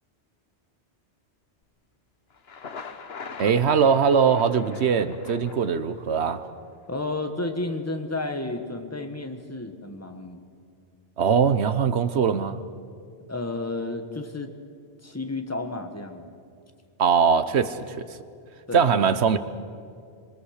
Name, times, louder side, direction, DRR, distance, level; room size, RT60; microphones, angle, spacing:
Thunder, 2.3-6.3, left 5 dB, 60° left, 1.4 m, -42 dB
voice 1, 3.4-6.5 11.2-12.6 17.0-18.0 18.7-19.4, right 6 dB, 70° right, 12 dB, 1.2 m, -21 dB
voice 2, 6.9-10.4 13.3-14.5 15.0-16.3 18.7-18.9, left 2 dB, 15° left, 6 dB, 1.4 m, -32 dB
26.0 x 23.0 x 6.6 m, 2.3 s
omnidirectional pair, 1.2 m